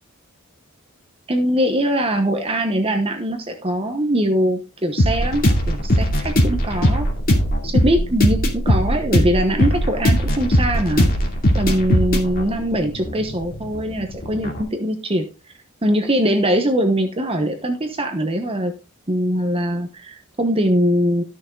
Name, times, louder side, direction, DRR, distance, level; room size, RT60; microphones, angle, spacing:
voice 1, 1.3-7.1 7.6-11.1 11.5-15.3 15.8-18.7 19.1-21.2, equal, 25° right, 5 dB, 1.0 m, -21 dB
sound 1, 5.0-14.6, equal, 40° left, 2.7 m, -19 dB
13.0 x 6.2 x 3.8 m, 0.31 s
head